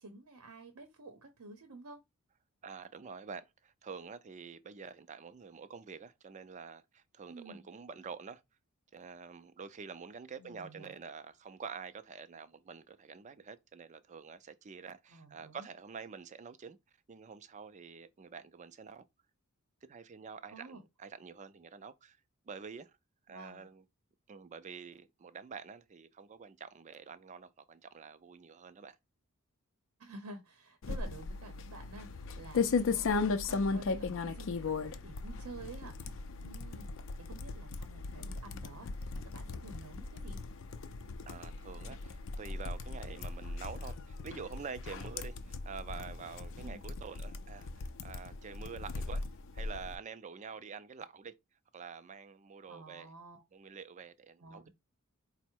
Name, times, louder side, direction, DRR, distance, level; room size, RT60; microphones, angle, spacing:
voice 1, 0.0-2.0 7.3-7.6 10.4-10.9 15.1-15.7 20.5-20.8 23.3-23.7 30.0-36.9 37.2-40.4 46.6-46.9 52.7-53.4 54.4-54.7, right 2 dB, 80° right, 0.7 m, -50 dB
voice 2, 2.6-8.4 8.9-16.8 17.1-19.0 19.8-22.2 22.4-22.9 23.3-23.8 24.3-29.0 41.2-49.2 49.5-51.4 51.7-53.1 53.5-54.7, right 5 dB, 35° right, 0.4 m, -47 dB
sound 1, 30.8-50.0, left 4 dB, 60° left, 0.4 m, -37 dB
4.5 x 2.1 x 4.4 m
head